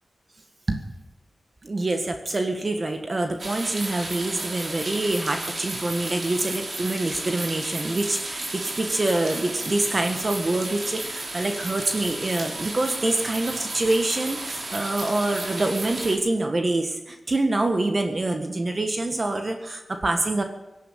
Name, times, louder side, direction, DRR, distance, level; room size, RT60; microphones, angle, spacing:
voice 1, 1.6-20.4, right 2 dB, 40° right, 5 dB, 1.7 m, -26 dB
sound 1, 3.4-16.2, right 2 dB, 55° right, 4.2 m, -33 dB
18.0 x 10.5 x 7.6 m, 1.0 s
wide cardioid pair, 75°, 0 cm